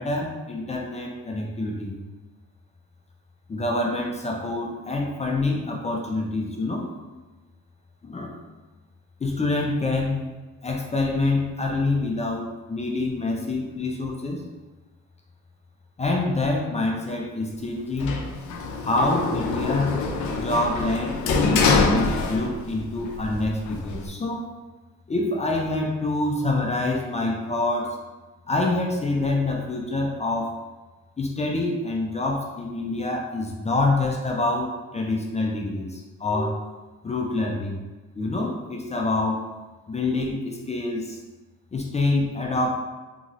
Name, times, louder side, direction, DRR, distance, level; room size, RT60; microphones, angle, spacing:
voice 1, 0.0-2.0 3.5-6.9 8.0-8.3 9.2-10.2 10.6-14.4 16.0-18.1 18.8-20.0 20.3-24.5 25.1-28.0 28.5-30.6 31.2-36.6 37.0-37.8 38.1-39.4 39.9-41.2 41.7-42.8, left 2 dB, 20° left, 0 dB, 0.4 m, -26 dB
Sliding door, 18.0-22.8 23.1-24.1, left 4 dB, 75° left, 0.5 m, -24 dB
2.9 x 2.7 x 2.6 m, 1.2 s
cardioid pair, 90°, 30 cm